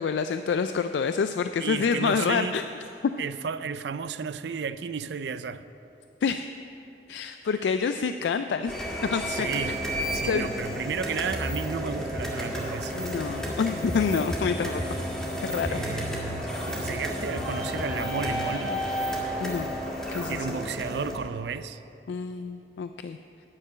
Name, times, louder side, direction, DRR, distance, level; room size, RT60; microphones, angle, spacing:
voice 1, 0.0-2.6 6.2-6.5 7.1-8.7 9.1-9.8 10.2-10.5 12.9-14.8 15.4-15.8 19.4-19.8 20.1-20.6 22.1-23.2, left 5 dB, 85° left, 0.3 m, -27 dB
voice 2, 1.6-2.6 3.2-5.7 7.5-7.6 9.3-9.8 10.1-13.0 15.7-18.9 20.3-21.8, right 6 dB, 75° right, 0.4 m, -33 dB
sound 1, 8.7-21.2, equal, 5° left, 1.7 m, -31 dB
9.7 x 6.7 x 8.6 m
head